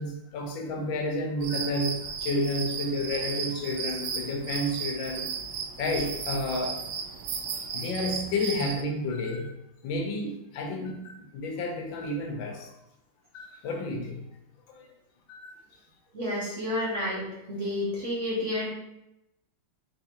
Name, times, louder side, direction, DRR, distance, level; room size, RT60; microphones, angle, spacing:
voice 1, 0.0-5.3 5.8-6.8 7.3-9.5 9.8-12.7 13.3-14.2 14.7-14.9 15.3-15.5, left 1 dB, 90° left, 2 dB, 1.6 m, -31 dB
sound 1, 1.4-8.8, right 6 dB, 75° right, 1.2 m, -35 dB
voice 2, 16.1-18.7, left 1 dB, 45° right, -4 dB, 1.2 m, -30 dB
4.6 x 3.5 x 2.9 m, 0.86 s
omnidirectional pair, 2.1 m